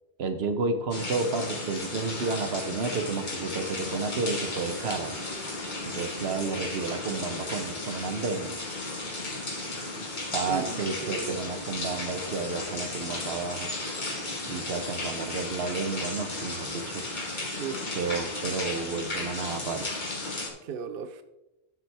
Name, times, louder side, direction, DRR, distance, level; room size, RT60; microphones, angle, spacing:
voice 1, 0.2-5.1 5.8-8.5 10.3-13.7 14.4-17.0 18.0-19.9, right 4 dB, 85° right, 1.1 m, -31 dB
sound 1, 0.9-20.5, left 2 dB, 50° left, 1.7 m, -35 dB
sound 2, 2.4-18.6, equal, 5° left, 3.2 m, -50 dB
voice 2, 10.4-11.5 17.6-18.0 20.6-21.2, right 7 dB, 65° right, 0.8 m, -36 dB
9.6 x 7.4 x 3.4 m
omnidirectional pair, 1.0 m